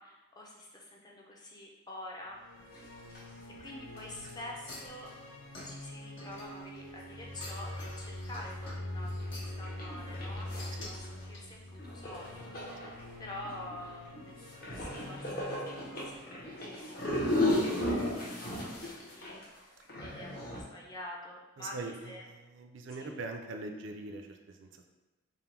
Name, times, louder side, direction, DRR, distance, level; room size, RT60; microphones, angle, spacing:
voice 1, 0.0-2.4 3.6-5.1 5.6-12.4 13.2-16.5 17.1-18.9 19.2-19.4 20.0-21.8 22.0-22.3 23.0-23.2, left 1 dB, 20° left, -2 dB, 0.4 m, -47 dB
sound 1, 2.3-16.1, left 1 dB, 85° left, 0.7 m, -44 dB
sound 2, 2.6-2.8 3.1-3.2 3.5-3.7 4.0-5.1 7.0-7.1 8.6-8.7 9.0-9.2 9.6-11.2 11.8-20.6, left 1 dB, 45° left, 0.8 m, -35 dB
sound 3, 4.7-6.9 7.3-9.6 10.6-10.9 11.3-11.4, left 2 dB, 70° left, 1.2 m, -49 dB
voice 2, 21.6-24.9, right 3 dB, 70° right, 5 dB, 0.4 m, -42 dB
3.6 x 2.1 x 4.3 m, 1.1 s
head